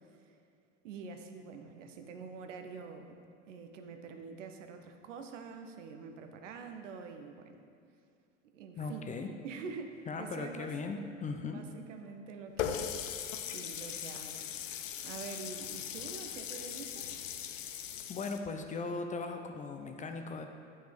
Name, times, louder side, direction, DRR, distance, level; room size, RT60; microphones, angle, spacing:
voice 1, 0.8-3.2 3.5-7.6 8.5-9.2 9.4-10.9 11.5-12.9 13.4-14.5 14.7-17.1, right 5 dB, 75° right, 5 dB, 0.8 m, -46 dB
voice 2, 8.8-9.3 10.1-11.6 18.1-20.5, left 4 dB, 20° left, 5 dB, 0.4 m, -38 dB
Water tap faucet, 12.6-18.4, left 9 dB, 80° left, 0.6 m, -39 dB
8.9 x 5.4 x 3.4 m, 2.4 s
hypercardioid pair, 75°, 38 cm